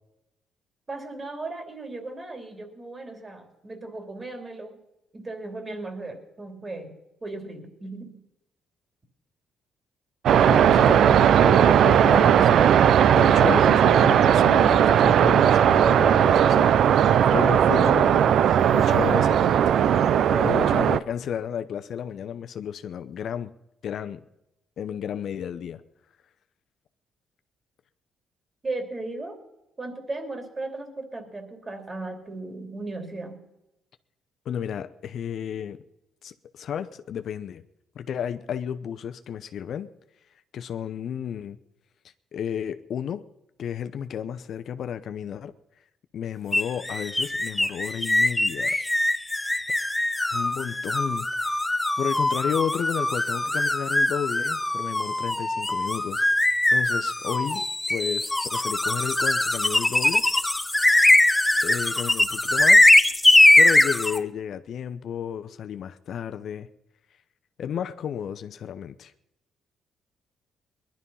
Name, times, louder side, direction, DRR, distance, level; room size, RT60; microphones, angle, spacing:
voice 1, 0.9-4.8 5.1-8.2 28.6-29.4 29.8-33.4, right 2 dB, 30° right, 6 dB, 3.0 m, -36 dB
sound 1, 10.3-21.0, right 9 dB, 70° right, 0.5 m, -18 dB
voice 2, 10.4-17.0 17.3-18.3 18.7-19.6 20.3-23.5 23.8-24.2 24.8-25.8 34.5-35.8 36.2-37.6 38.0-39.9 40.5-41.6 42.3-43.2 43.6-45.5 46.1-48.8 50.3-51.3 52.0-57.6 57.9-60.2 61.6-62.9 63.6-66.7 67.6-69.1, left 8 dB, 65° left, 10 dB, 0.7 m, -32 dB
sound 2, 46.5-64.2, left 1 dB, 10° left, 0.6 m, -21 dB
20.0 x 11.5 x 5.5 m, 0.90 s
cardioid pair, 90°, 0 cm